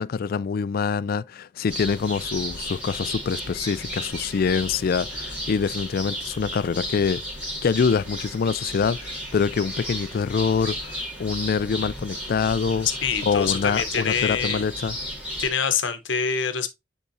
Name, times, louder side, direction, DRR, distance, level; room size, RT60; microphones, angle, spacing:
voice 1, 0.0-12.9 13.2-15.0, left 5 dB, 50° left, 0.3 m, -25 dB
sound 1, 1.7-15.5, equal, 5° right, 2.4 m, -34 dB
voice 2, 13.0-14.6 15.4-16.7, left 6 dB, 75° left, 0.9 m, -25 dB
9.9 x 3.7 x 2.6 m
head